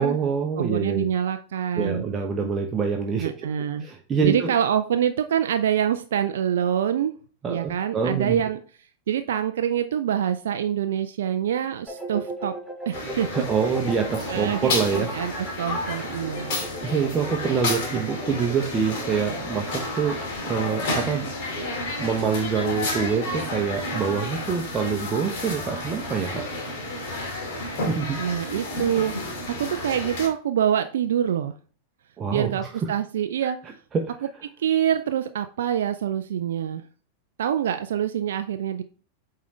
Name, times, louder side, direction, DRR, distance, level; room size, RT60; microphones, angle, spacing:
voice 1, 0.0-1.0 1.8-3.5 3.8-4.5 7.4-8.4 13.3-15.1 16.8-21.3 22.0-26.5 27.8-28.2 32.2-32.5 32.8-32.9 33.9-34.1, right 6 dB, 25° right, 2 dB, 0.9 m, -26 dB
voice 2, 0.6-2.0 3.2-3.9 4.2-7.1 7.5-8.6 9.1-12.6 12.9-13.3 14.3-16.7 28.2-29.1 29.6-31.5 32.3-33.6 34.2-34.3 34.6-36.8 37.4-38.8, right 9 dB, 60° right, 8 dB, 0.4 m, -25 dB
sound 1, 11.9-20.4, equal, 5° left, 1.4 m, -37 dB
sound 2, 12.9-30.3, left 2 dB, 50° left, 2.2 m, -31 dB
8.4 x 3.8 x 3.2 m, 0.41 s
figure-of-eight pair, 90°, 0 cm